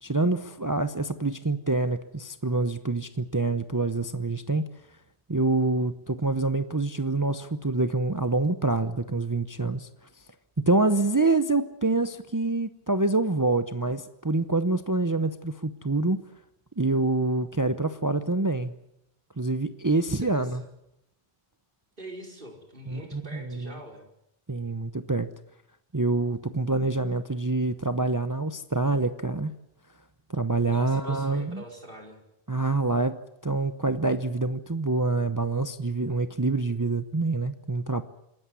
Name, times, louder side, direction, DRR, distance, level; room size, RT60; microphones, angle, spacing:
voice 1, 0.0-4.7 5.3-9.9 10.6-16.2 16.8-18.7 19.4-20.6 22.9-23.7 24.5-25.3 25.9-29.5 30.3-31.6 32.5-38.0, right 3 dB, 20° right, 10 dB, 0.8 m, -26 dB
voice 2, 20.3-20.7 22.0-24.1 30.7-32.2, equal, 60° right, 1 dB, 5.2 m, -44 dB
27.0 x 14.0 x 9.7 m, 0.83 s
omnidirectional pair, 1.0 m